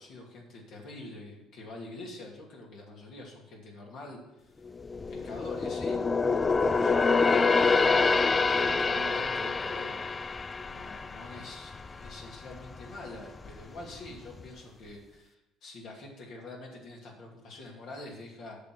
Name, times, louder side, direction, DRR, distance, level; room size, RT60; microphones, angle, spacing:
voice 1, 0.0-4.6 5.1-6.0 6.3-7.7 8.3-10.1 10.6-15.4 15.6-18.6, left 2 dB, 65° left, -2 dB, 2.5 m, -45 dB
sound 1, 4.7-12.2 12.6-12.8 13.4-14.1 14.4-14.5, left 4 dB, 25° left, 0.4 m, -26 dB
8.2 x 6.3 x 7.6 m, 0.95 s
cardioid pair, 100°, 0 cm